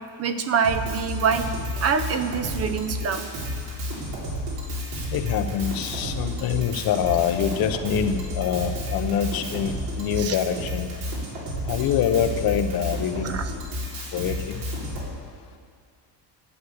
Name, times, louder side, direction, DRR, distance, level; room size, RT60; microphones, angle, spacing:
voice 1, 0.2-1.5 1.8-3.3 3.6-3.7 10.2-10.4 13.2-13.5, right 6 dB, 35° right, 9 dB, 0.6 m, -25 dB
Drum kit, 0.6-15.1, left 1 dB, 70° right, 3.7 m, -31 dB
voice 2, 5.1-9.7 10.0-10.9 11.7-13.3 14.1-14.3, left 8 dB, 55° left, 8 dB, 0.9 m, -25 dB
11.5 x 8.2 x 8.0 m, 2.2 s
cardioid pair, 180°, 44 cm